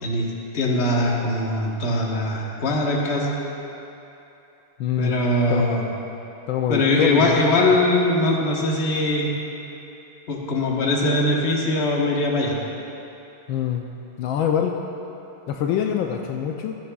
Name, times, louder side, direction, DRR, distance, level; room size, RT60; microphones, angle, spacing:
voice 1, 0.0-3.3 5.0-5.9 6.7-9.3 10.3-12.6, left 1 dB, 35° left, -3 dB, 1.3 m, -21 dB
voice 2, 4.8-5.2 5.5-5.9 6.5-7.6 13.5-13.8 14.2-14.8 15.5-16.8, left 9 dB, 75° left, 2 dB, 1.3 m, -24 dB
15.5 x 13.5 x 2.4 m, 2.9 s
omnidirectional pair, 2.3 m